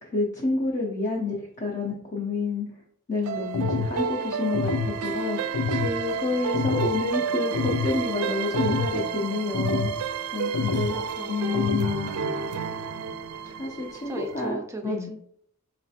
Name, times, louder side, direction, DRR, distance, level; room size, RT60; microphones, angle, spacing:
voice 1, 0.0-2.7 3.1-10.9 11.3-12.1 13.4-15.1, left 3 dB, 35° left, -2 dB, 0.6 m, -29 dB
sound 1, 3.2-14.5, right 6 dB, 85° right, 0.4 m, -31 dB
sound 2, 3.5-4.0 4.5-4.9 5.5-5.9 6.5-6.9 7.5-7.9 8.5-8.9 9.5-10.0 10.5-10.9 11.5-11.9, left 4 dB, 90° left, 0.4 m, -27 dB
voice 2, 10.9-11.7 14.0-15.2, right 2 dB, 15° right, 5 dB, 0.4 m, -37 dB
4.1 x 3.1 x 2.8 m, 0.66 s
head